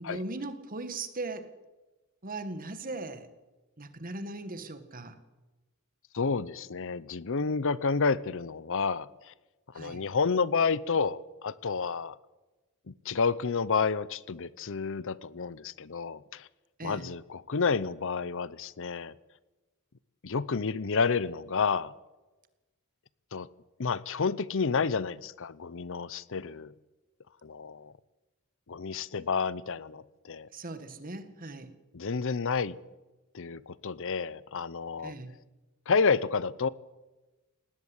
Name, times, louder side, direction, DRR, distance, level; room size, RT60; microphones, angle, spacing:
voice 1, 0.0-1.5 2.2-3.3 3.8-5.2 9.7-10.0 16.8-17.1 30.5-31.7 35.0-35.3, right 2 dB, 40° right, 10 dB, 1.9 m, -39 dB
voice 2, 6.1-9.3 9.7-12.2 12.9-16.5 16.8-19.1 20.2-21.9 23.3-23.5 23.8-26.7 27.4-27.9 28.7-30.5 31.9-32.8 33.3-35.1 35.9-36.7, left 5 dB, 60° left, 19 dB, 0.7 m, -30 dB
19.5 x 17.5 x 8.2 m, 1.1 s
head